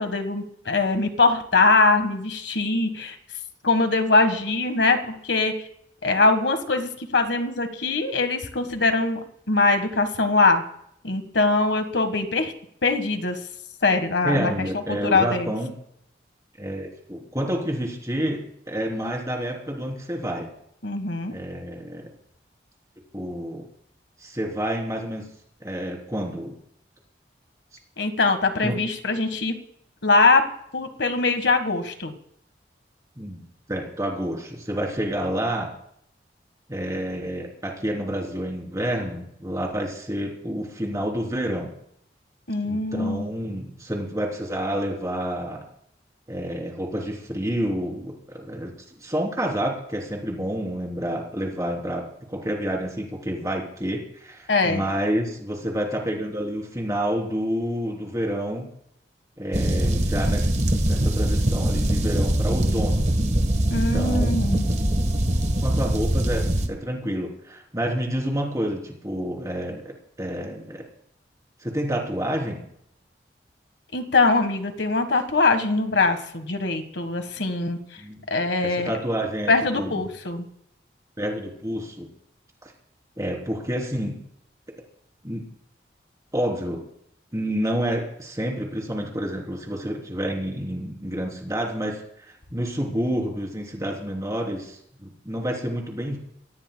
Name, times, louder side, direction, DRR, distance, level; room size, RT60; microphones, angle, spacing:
voice 1, 0.0-3.2 3.6-5.5 6.0-9.2 9.5-10.6 11.0-12.5 12.8-13.4 13.8-14.5 15.0-15.5 20.8-21.3 28.0-29.5 30.0-30.4 30.7-32.1 42.5-43.2 54.5-54.8 63.7-64.7 73.9-77.8 78.3-79.0 79.5-80.4, left 3 dB, 75° left, 7 dB, 1.6 m, -22 dB
voice 2, 14.2-15.7 16.6-20.5 21.3-22.1 23.1-23.6 24.2-25.3 25.6-26.5 28.6-28.8 33.2-33.4 33.7-35.7 36.7-41.7 42.6-45.6 46.3-58.7 59.4-60.5 60.9-63.0 63.7-64.4 65.6-70.8 71.6-72.6 78.0-78.3 78.6-80.0 81.2-82.1 82.6-82.7 83.2-84.2 85.2-85.4 86.3-86.8 87.3-92.0 92.5-96.2, equal, 20° right, 0 dB, 3.5 m, -29 dB
sound 1, 59.5-66.7, right 1 dB, 40° right, 1.3 m, -22 dB
24.5 x 17.0 x 2.3 m, 0.72 s
head